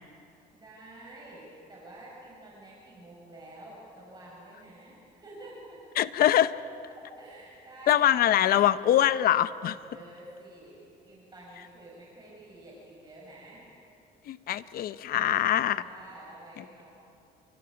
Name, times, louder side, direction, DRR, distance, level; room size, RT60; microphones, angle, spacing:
voice 1, 0.3-5.8 6.9-8.6 9.9-13.7 15.6-16.9, right 1 dB, 25° right, -5 dB, 6.1 m, -49 dB
voice 2, 6.0-6.5 7.9-9.8 14.3-15.8, left 12 dB, 60° left, 15 dB, 0.7 m, -23 dB
27.5 x 23.5 x 5.2 m, 2.7 s
cardioid pair, 110°, 17 cm